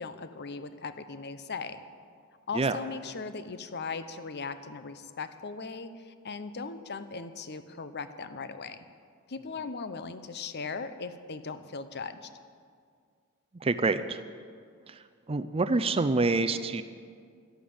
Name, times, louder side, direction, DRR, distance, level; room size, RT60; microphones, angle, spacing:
voice 1, 0.0-1.8 2.5-8.8 9.3-12.3, left 4 dB, 50° left, 11 dB, 0.8 m, -38 dB
voice 2, 13.6-14.2 14.9-15.0 15.3-16.8, right 3 dB, 25° right, 9 dB, 0.5 m, -26 dB
13.0 x 11.5 x 8.7 m, 2.1 s
head